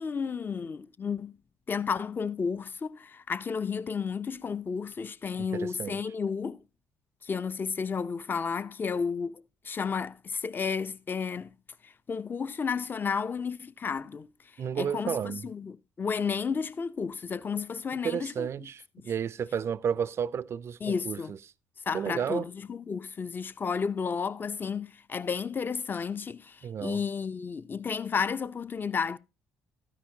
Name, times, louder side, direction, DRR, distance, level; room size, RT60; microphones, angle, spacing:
voice 1, 0.0-1.3 1.7-6.6 7.2-11.5 11.8-14.3 14.8-18.5 19.0-19.1 20.8-21.3 21.9-29.2, left 6 dB, 35° left, 0.5 m, -32 dB
voice 2, 5.5-6.0 14.6-15.5 18.0-20.8 21.0-21.4 21.9-22.5 26.6-27.0, right 8 dB, 45° right, 0.4 m, -32 dB
12.5 x 10.0 x 2.8 m
hypercardioid pair, 55°, 6 cm